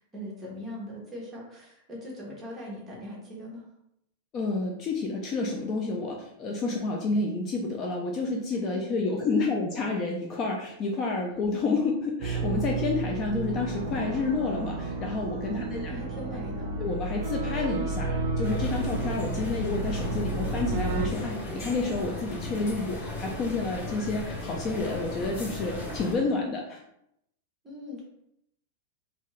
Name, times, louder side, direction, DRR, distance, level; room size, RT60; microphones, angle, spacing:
voice 1, 0.1-3.6 8.5-8.8 15.5-16.7 27.6-28.0, left 1 dB, 10° right, -4 dB, 0.9 m, -40 dB
voice 2, 4.3-15.9 16.8-26.8, left 3 dB, 25° left, 0 dB, 0.3 m, -29 dB
sound 1, 12.2-21.1, right 3 dB, 60° right, 0.5 m, -31 dB
sound 2, 18.4-26.2, left 2 dB, 45° left, 1.4 m, -36 dB
2.7 x 2.4 x 3.0 m, 0.78 s
supercardioid pair, 170°, 0 cm